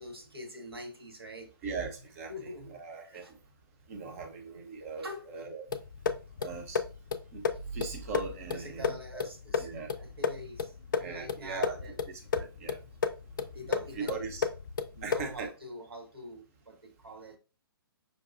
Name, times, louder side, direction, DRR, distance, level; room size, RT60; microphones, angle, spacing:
voice 1, 0.0-1.5 2.3-3.3 5.0-5.3 8.5-9.7 10.0-12.0 13.5-14.4 14.9-17.4, equal, 75° right, 1.0 m, -45 dB
voice 2, 1.6-3.4 3.9-5.8 6.1-6.8 7.3-7.5 7.7-9.3 9.6-9.9 11.0-11.8 12.4-12.8 13.9-14.5 15.0-15.5, right 4 dB, 35° right, 0.8 m, -40 dB
sound 1, 5.7-15.4, left 6 dB, 55° left, 0.4 m, -34 dB
5.2 x 2.2 x 2.5 m
figure-of-eight pair, 125°, 13 cm